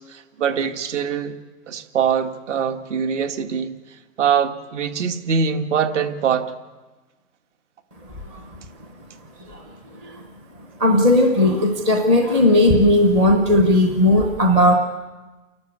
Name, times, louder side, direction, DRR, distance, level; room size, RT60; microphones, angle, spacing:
voice 1, 0.0-1.4 1.7-3.7 4.2-6.5, right 7 dB, 55° right, 2.0 m, -23 dB
voice 2, 10.8-14.7, left 1 dB, 10° right, 0.6 m, -16 dB
29.0 x 12.0 x 8.1 m
hypercardioid pair, 165°, 42 cm